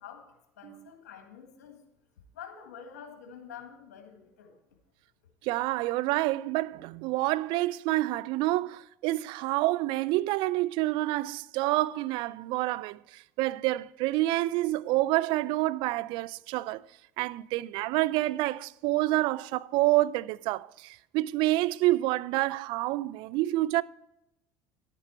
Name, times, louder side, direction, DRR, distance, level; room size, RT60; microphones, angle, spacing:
voice 1, 0.0-1.8 2.3-4.6, left 7 dB, 85° left, 1.9 m, -47 dB
voice 2, 5.4-16.8 17.2-23.8, right 17 dB, 65° right, 0.4 m, -28 dB
11.0 x 9.1 x 4.5 m
hypercardioid pair, 75°, 9 cm